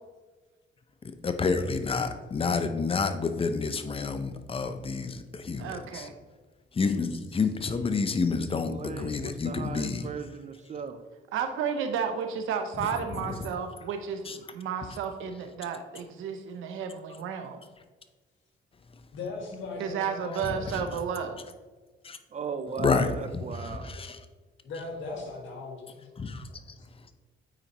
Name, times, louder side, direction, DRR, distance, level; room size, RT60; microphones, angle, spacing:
voice 1, 1.2-6.1 6.7-10.1 13.3-13.4 14.3-14.4 20.7-20.8 22.0-22.2 22.8-23.1 23.7-24.2 26.2-26.5, left 4 dB, 30° left, 9 dB, 0.6 m, -29 dB
voice 2, 5.6-6.1 11.3-17.6 19.8-21.4, right 7 dB, 85° right, 7 dB, 0.8 m, -32 dB
voice 3, 8.4-11.0 22.3-23.9, right 6 dB, 35° right, 10 dB, 0.5 m, -37 dB
voice 4, 19.1-20.8 23.9-24.0 24.6-26.0, left 3 dB, 70° left, 0 dB, 1.8 m, -38 dB
8.9 x 4.2 x 3.0 m, 1.3 s
cardioid pair, 90°, 20 cm